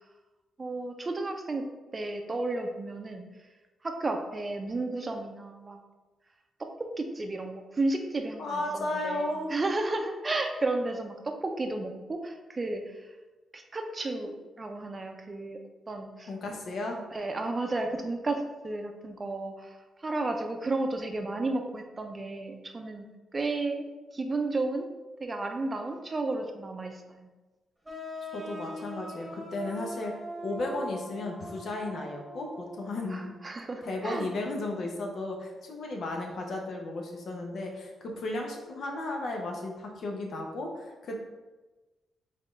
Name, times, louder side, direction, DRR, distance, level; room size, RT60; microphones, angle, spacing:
voice 1, 0.6-1.7 1.9-3.2 3.8-5.8 6.6-6.7 7.0-13.1 13.5-15.6 15.9-16.3 17.1-23.1 23.3-23.9 24.1-24.9 25.2-27.3 33.1-34.3, right 2 dB, 30° right, 4 dB, 0.5 m, -33 dB
voice 2, 8.4-9.5 16.3-17.0 28.3-30.1 30.4-33.4 33.8-41.2, left 2 dB, 65° left, 1 dB, 0.8 m, -34 dB
sound 1, 27.8-33.4, equal, 10° right, 1.1 m, -42 dB
4.1 x 3.7 x 3.2 m, 1.2 s
cardioid pair, 85°, 0 cm